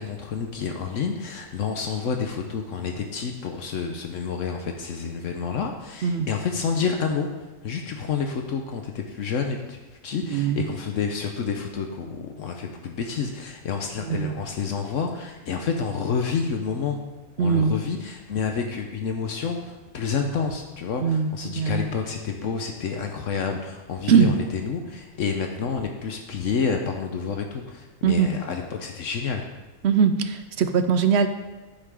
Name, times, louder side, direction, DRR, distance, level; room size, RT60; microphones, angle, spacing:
voice 1, 0.0-7.3 7.6-17.0 17.4-29.5, left 6 dB, 70° left, 4 dB, 1.1 m, -29 dB
voice 2, 10.3-10.7 14.1-14.3 17.4-17.8 21.0-21.9 24.1-24.3 28.0-28.3 29.8-31.3, right 7 dB, 60° right, 9 dB, 0.8 m, -21 dB
10.5 x 5.7 x 4.8 m, 1.2 s
omnidirectional pair, 1.4 m